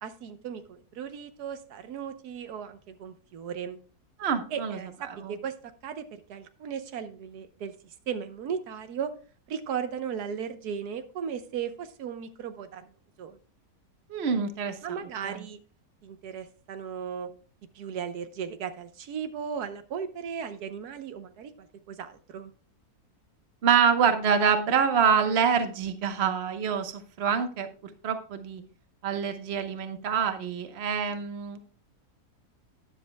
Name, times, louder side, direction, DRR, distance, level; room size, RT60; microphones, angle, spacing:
voice 1, 0.0-3.8 4.5-5.5 5.8-7.7 8.1-9.1 9.5-12.9 13.2-13.4 14.8-15.6 16.0-17.3 17.7-22.5, right 7 dB, 85° right, 10 dB, 1.4 m, -36 dB
voice 2, 4.2-4.8 5.1-5.4 14.1-15.0 15.2-15.4 23.6-28.6 29.0-31.6, right 7 dB, 45° right, 8 dB, 1.1 m, -26 dB
12.0 x 10.0 x 2.2 m, 0.38 s
omnidirectional pair, 1.6 m